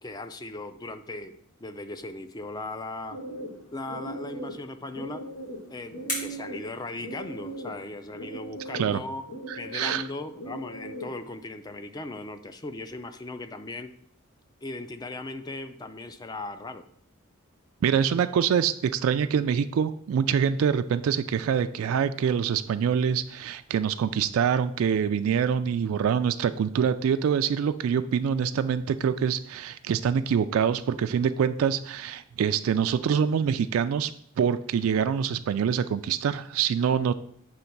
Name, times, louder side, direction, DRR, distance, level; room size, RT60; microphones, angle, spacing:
voice 1, 0.0-3.2 3.7-5.3 5.7-9.2 9.5-13.9 14.6-16.8, left 2 dB, 20° left, 8 dB, 0.4 m, -38 dB
sound 1, 3.1-11.3, right 1 dB, 80° left, 1.2 m, -40 dB
sound 2, 5.0-7.7, left 1 dB, 40° left, 3.2 m, -39 dB
voice 2, 9.5-10.0 17.8-34.1 34.4-37.1, right 7 dB, 75° right, 11 dB, 0.3 m, -25 dB
7.9 x 3.1 x 5.8 m, 0.67 s
head